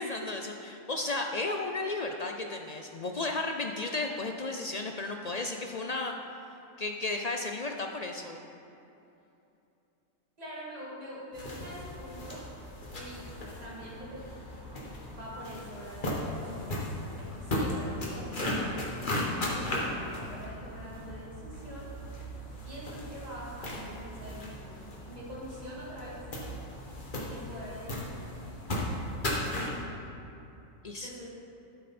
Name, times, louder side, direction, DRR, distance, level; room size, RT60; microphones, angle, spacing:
voice 1, 0.0-6.2 6.8-8.4 30.8-31.1, left 2 dB, 65° left, 3 dB, 0.4 m, -34 dB
voice 2, 10.4-12.4 12.9-13.3 13.6-14.2 15.1-18.6 19.0-21.9 22.6-26.3 27.3-28.3 31.0-31.3, equal, 30° right, -6 dB, 2.2 m, -44 dB
sound 1, 11.3-29.8, left 1 dB, 40° left, 1.5 m, -36 dB
12.5 x 7.7 x 4.3 m, 2.8 s
omnidirectional pair, 1.4 m